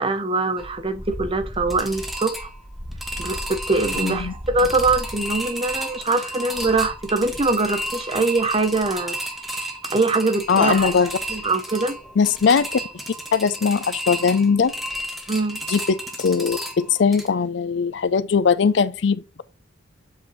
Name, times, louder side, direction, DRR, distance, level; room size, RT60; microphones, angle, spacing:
voice 1, 0.0-2.5 3.2-9.2 9.9-11.0 11.3-12.0 15.3-15.6, right 3 dB, 30° right, 0.7 m, -23 dB
sound 1, 0.6-17.3, equal, ahead, 0.9 m, -32 dB
voice 2, 4.0-4.3 10.5-11.1 12.2-12.8 13.3-14.7 15.7-19.4, left 5 dB, 70° left, 0.4 m, -20 dB
7.5 x 4.4 x 3.0 m
head